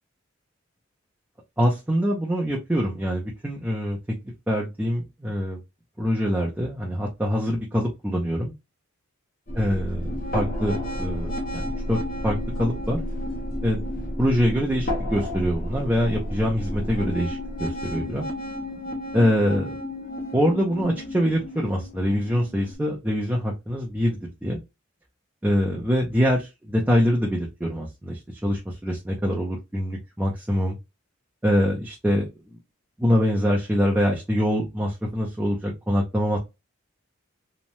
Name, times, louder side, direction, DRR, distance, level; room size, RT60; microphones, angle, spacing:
voice 1, 1.6-4.0 4.5-5.6 6.0-8.5 9.5-13.0 13.6-13.8 14.2-18.3 19.1-19.8 20.3-24.6 25.4-30.8 31.4-32.3 33.0-36.4, equal, 10° right, -3 dB, 0.4 m, -24 dB
sound 1, 9.5-22.8, left 1 dB, 40° left, 0.6 m, -31 dB
3.0 x 2.1 x 2.6 m, 0.23 s
head